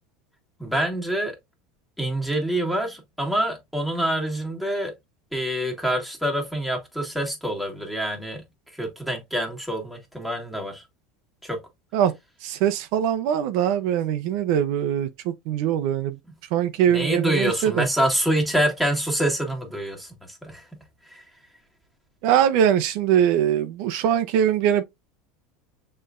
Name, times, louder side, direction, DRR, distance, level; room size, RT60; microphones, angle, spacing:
voice 1, 0.6-1.3 2.0-4.9 5.3-8.5 8.7-10.8 11.4-11.6 16.9-20.8 21.1-21.2, right 1 dB, ahead, 1.6 m, -26 dB
voice 2, 12.4-16.2 16.5-17.9 22.2-24.8, right 9 dB, 60° right, 0.6 m, -22 dB
6.6 x 3.2 x 2.5 m
supercardioid pair, 140°, 0 cm